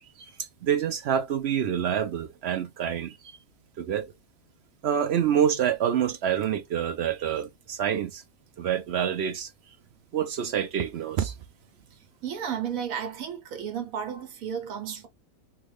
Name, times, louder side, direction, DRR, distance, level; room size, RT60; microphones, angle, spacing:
voice 1, 0.6-3.3 3.8-4.1 4.8-8.2 8.6-9.5 10.1-11.3, right 9 dB, 65° right, 0.7 m, -27 dB
voice 2, 11.9-15.1, right 8 dB, 80° right, 1.3 m, -33 dB
3.5 x 2.3 x 3.2 m
omnidirectional pair, 1.5 m